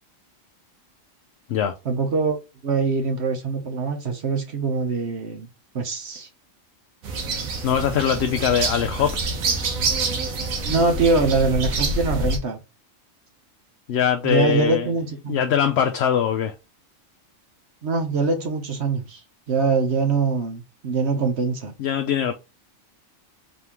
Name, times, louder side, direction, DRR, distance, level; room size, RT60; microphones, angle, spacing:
voice 1, 1.9-2.4 2.6-5.5 5.7-6.3 10.6-12.6 14.2-15.4 17.8-19.2 19.5-21.7, right 4 dB, 55° right, 1.1 m, -23 dB
sound 1, 7.0-12.4, right 3 dB, 85° right, 1.4 m, -26 dB
voice 2, 7.6-9.2 13.9-14.9 15.3-16.5 21.8-22.3, left 8 dB, 65° left, 0.7 m, -22 dB
4.1 x 3.5 x 2.9 m
omnidirectional pair, 1.4 m